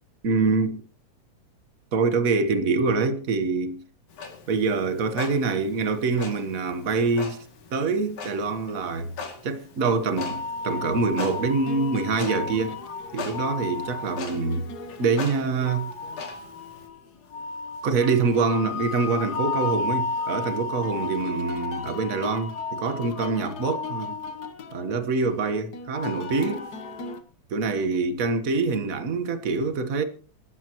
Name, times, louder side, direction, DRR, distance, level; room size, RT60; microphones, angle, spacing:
voice 1, 0.2-0.8 1.9-3.8 4.5-7.4 7.7-9.1 9.4-12.8 13.1-14.7 15.0-15.9 17.8-24.1 24.7-26.7 27.5-30.0, right 4 dB, 50° right, 0.9 m, -25 dB
Clock, 4.1-16.9, left 5 dB, 85° left, 4.0 m, -41 dB
sound 1, 10.2-27.2, left 4 dB, 65° left, 0.9 m, -34 dB
25.0 x 13.0 x 3.0 m
omnidirectional pair, 3.4 m